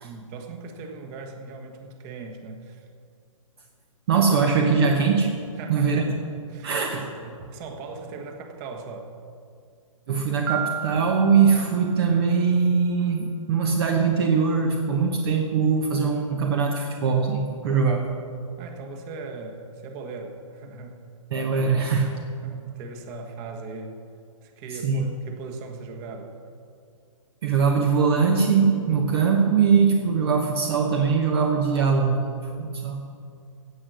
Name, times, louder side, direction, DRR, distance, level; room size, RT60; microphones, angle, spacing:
voice 1, 0.0-2.9 5.6-6.8 7.2-9.1 18.6-21.0 22.4-24.0 24.4-26.3, right 4 dB, 30° right, 4 dB, 1.6 m, -39 dB
voice 2, 4.1-5.4 5.7-6.2 6.6-7.2 10.1-18.1 21.3-22.2 24.7-25.0 27.4-33.1, right 5 dB, 45° right, 3 dB, 1.2 m, -22 dB
Piano, 10.5-12.4, right 9 dB, 15° right, 0.3 m, -33 dB
16.5 x 7.6 x 6.3 m, 2.3 s
hypercardioid pair, 130°, 18 cm